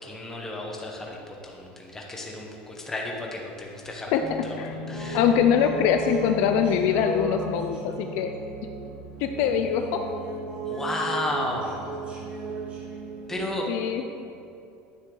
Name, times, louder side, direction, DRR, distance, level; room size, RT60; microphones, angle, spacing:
voice 1, 0.0-4.2 4.5-5.2 10.6-11.9 13.3-13.7, left 1 dB, 10° left, -1 dB, 1.1 m, -33 dB
sound 1, 4.2-13.5, right 2 dB, 25° right, 1.5 m, -35 dB
voice 2, 5.1-8.3 9.2-10.0 13.7-14.0, left 8 dB, 60° left, 6 dB, 0.5 m, -23 dB
10.0 x 6.5 x 3.9 m, 2.6 s
cardioid pair, 160°, 4 cm